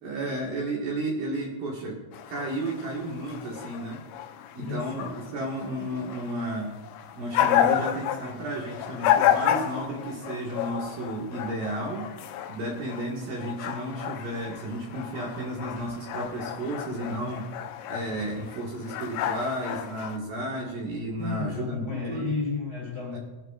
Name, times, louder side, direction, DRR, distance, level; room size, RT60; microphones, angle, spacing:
voice 1, 0.0-2.0 2.3-4.0 4.5-6.8 7.2-12.1 12.5-17.5 17.9-22.3 23.1-23.2, right 1 dB, 60° right, -3 dB, 2.8 m, -33 dB
sound 1, 2.1-20.2, left 11 dB, 90° left, 3.3 m, -31 dB
voice 2, 4.6-5.0 7.6-7.8 21.2-23.2, left 4 dB, 15° left, -3 dB, 2.3 m, -32 dB
20.5 x 11.0 x 2.5 m, 1.1 s
omnidirectional pair, 5.6 m